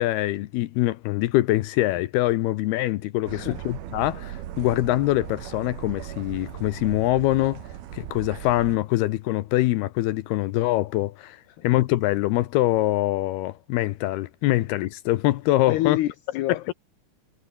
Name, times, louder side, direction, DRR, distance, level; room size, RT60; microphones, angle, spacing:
voice 1, 0.0-7.6 7.9-16.0 16.7-16.8, left 16 dB, 85° left, 2.2 m, -24 dB
voice 2, 3.3-3.6 11.5-11.7 15.7-16.7, left 15 dB, 70° left, 2.8 m, -27 dB
sound 1, 3.3-8.8, right 12 dB, 60° right, 3.0 m, -38 dB
omnidirectional pair, 5.8 m